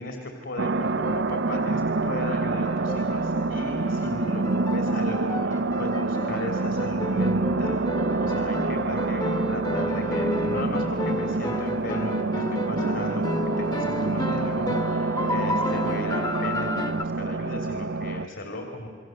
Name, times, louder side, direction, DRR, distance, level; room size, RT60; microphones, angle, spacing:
voice 1, 0.0-7.9 8.2-18.9, left 2 dB, 70° left, 3 dB, 3.2 m, -36 dB
sound 1, 0.6-18.3, right 3 dB, 65° right, 0.6 m, -27 dB
sound 2, 0.8-17.0, left 1 dB, 20° left, 1.1 m, -32 dB
29.5 x 23.5 x 7.9 m, 2.1 s
head